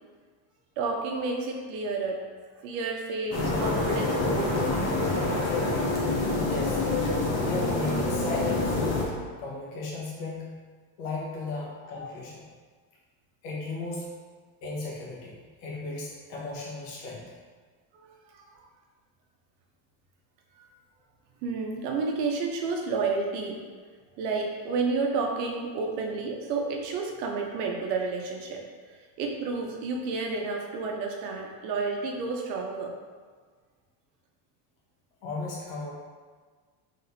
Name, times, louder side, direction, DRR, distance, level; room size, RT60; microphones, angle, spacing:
voice 1, 0.8-2.2 2.6-4.6 17.9-18.7 20.6-20.7 21.4-23.6 24.2-32.9, right 4 dB, 85° right, 1 dB, 0.9 m, -31 dB
sound 1, 3.3-9.0, left 2 dB, 35° left, 0.9 m, -26 dB
voice 2, 6.5-6.8 7.4-8.8 9.4-10.6 11.0-12.4 13.4-14.1 14.6-17.2 35.2-35.9, left 2 dB, 90° left, -4 dB, 1.3 m, -35 dB
4.1 x 3.6 x 2.7 m, 1.5 s
supercardioid pair, 120°, 47 cm